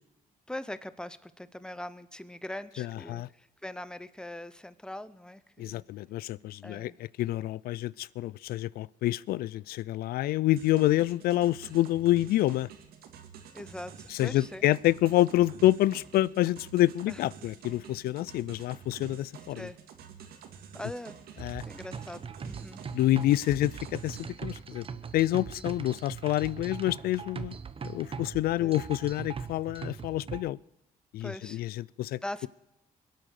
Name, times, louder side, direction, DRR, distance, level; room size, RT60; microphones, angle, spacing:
voice 1, 0.5-5.9 6.6-6.9 13.5-14.6 17.1-17.2 19.6-19.8 20.7-21.1 21.7-22.8 28.6-28.8 31.2-31.6 32.2-32.5, left 1 dB, 5° left, 0.9 m, -41 dB
voice 2, 2.8-3.3 5.6-12.7 14.1-19.7 21.4-21.6 22.9-24.8 25.1-27.6 27.8-30.6 31.1-32.2, left 15 dB, 80° left, 0.4 m, -27 dB
sound 1, 10.6-24.3, right 7 dB, 85° right, 2.2 m, -49 dB
sound 2, 21.4-30.4, right 6 dB, 35° right, 1.1 m, -41 dB
22.0 x 9.0 x 6.5 m
cardioid pair, 95°, 15 cm